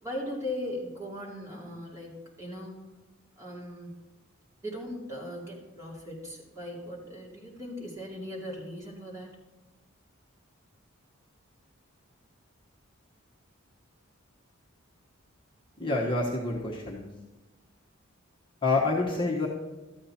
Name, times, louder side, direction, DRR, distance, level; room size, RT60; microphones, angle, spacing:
voice 1, 0.0-2.9 3.4-4.0 4.6-9.3, left 1 dB, 15° right, -4 dB, 2.7 m, -38 dB
voice 2, 15.8-17.1 18.6-19.5, left 3 dB, 25° left, -3 dB, 1.3 m, -27 dB
13.0 x 8.8 x 4.4 m, 1.1 s
head